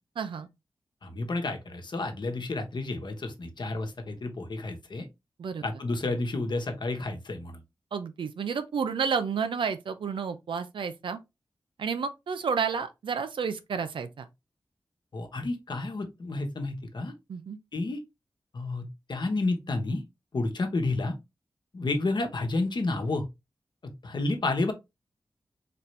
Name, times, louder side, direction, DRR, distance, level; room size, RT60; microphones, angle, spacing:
voice 1, 0.2-0.5 5.4-5.7 7.9-11.2 11.8-14.3 17.3-17.6, right 6 dB, 85° right, 0.5 m, -31 dB
voice 2, 1.0-5.0 5.6-7.6 15.1-17.1 17.7-18.0 18.5-20.0 20.3-21.1 21.7-23.2 24.0-24.7, left 2 dB, 65° left, 1.1 m, -30 dB
4.2 x 2.8 x 3.2 m
cardioid pair, 50°, 8 cm